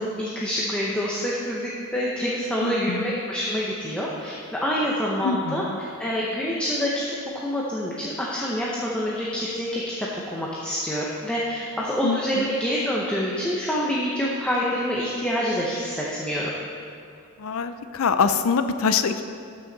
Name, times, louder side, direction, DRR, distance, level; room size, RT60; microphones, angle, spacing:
voice 1, 0.0-5.6 6.0-7.2 7.4-16.5, equal, 5° left, -5 dB, 0.8 m, -27 dB
voice 2, 2.6-3.2 5.2-5.8 12.0-12.6 17.4-19.2, left 5 dB, 65° left, 10 dB, 0.5 m, -25 dB
12.5 x 6.1 x 4.0 m, 2.4 s
head